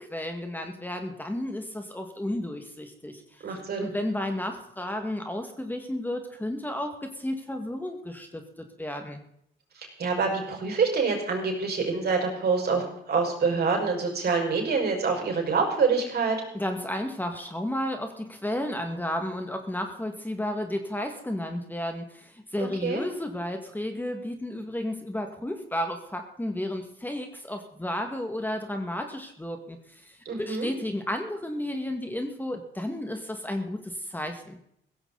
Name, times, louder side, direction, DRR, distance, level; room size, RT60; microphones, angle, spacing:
voice 1, 0.0-3.4 3.8-8.4 8.8-9.2 16.5-34.6, left 1 dB, 10° left, 4 dB, 1.9 m, -32 dB
voice 2, 3.4-3.9 9.8-16.4 22.8-23.0 30.3-30.7, right 4 dB, 55° right, 1 dB, 5.6 m, -26 dB
16.0 x 15.0 x 4.1 m, 0.73 s
cardioid pair, 90°, 20 cm